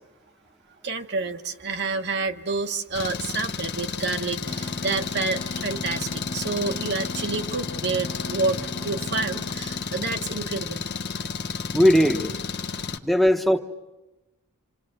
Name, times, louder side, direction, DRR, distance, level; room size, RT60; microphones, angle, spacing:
voice 1, 0.8-10.8, right 3 dB, 50° right, 5 dB, 1.2 m, -29 dB
Engine, 3.0-13.0, left 5 dB, 50° left, 1.0 m, -32 dB
sound 1, 4.4-10.3, left 2 dB, 30° left, 1.3 m, -40 dB
voice 2, 11.7-12.3 13.0-13.6, equal, ahead, 6 dB, 1.1 m, -18 dB
28.0 x 26.5 x 7.9 m, 1.0 s
head